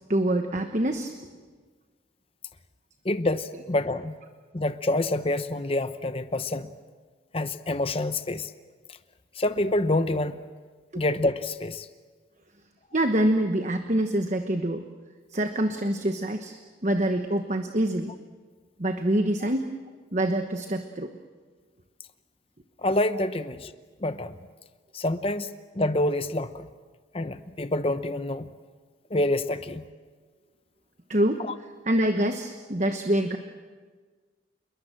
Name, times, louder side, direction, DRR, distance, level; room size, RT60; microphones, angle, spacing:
voice 1, 0.1-1.1 10.9-11.0 12.9-14.8 15.3-18.1 18.8-19.7 20.1-21.1 31.1-31.4 31.9-33.4, right 1 dB, 40° right, 6 dB, 1.1 m, -25 dB
voice 2, 3.0-4.2 4.5-6.7 7.3-8.5 9.4-10.4 10.9-11.9 19.4-19.5 22.8-23.7 24.0-24.4 24.9-26.7 27.1-28.5 29.1-29.9 31.4-31.5, left 1 dB, 30° left, 10 dB, 0.8 m, -27 dB
27.5 x 22.0 x 7.7 m, 1.5 s
head